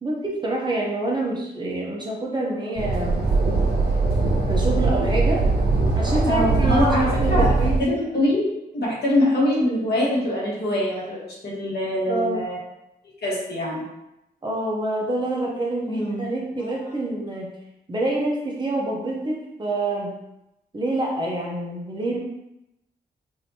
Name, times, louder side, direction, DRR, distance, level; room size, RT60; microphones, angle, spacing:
voice 1, 0.0-3.3 4.5-5.5 5.9-6.9 7.2-7.8 12.1-12.4 14.4-17.5 17.9-20.1 20.7-22.2, right 2 dB, 25° right, -3 dB, 0.8 m, -26 dB
sound 1, 2.8-7.8, right 3 dB, 65° right, 1.1 m, -21 dB
voice 2, 6.2-7.5 7.8-8.5 8.7-11.2 11.4-12.6 13.2-13.8 15.8-16.2 16.6-16.7, left 1 dB, 70° left, -5 dB, 1.5 m, -23 dB
4.9 x 2.7 x 2.8 m, 0.87 s
wide cardioid pair, 145°, 17 cm